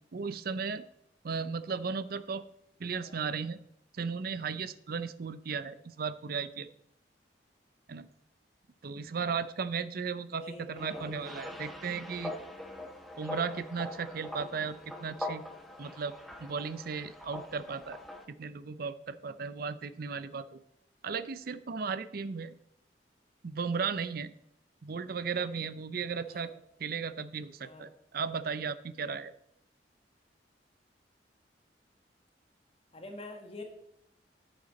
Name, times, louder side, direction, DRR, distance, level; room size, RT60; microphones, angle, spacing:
voice 1, 0.1-0.8 1.2-2.4 2.8-3.6 3.9-6.7 7.9-8.1 8.8-12.3 13.2-15.4 15.8-18.0 18.4-20.6 21.0-22.5 23.4-24.3 24.8-26.5 26.8-29.3, right 5 dB, 55° right, 14 dB, 0.5 m, -35 dB
voice 2, 10.3-11.3 26.3-26.5 27.6-27.9 32.9-33.6, left 2 dB, 35° left, 3 dB, 1.4 m, -46 dB
sound 1, 10.8-18.3, left 1 dB, ahead, 1.1 m, -43 dB
10.5 x 8.0 x 4.1 m, 0.76 s
head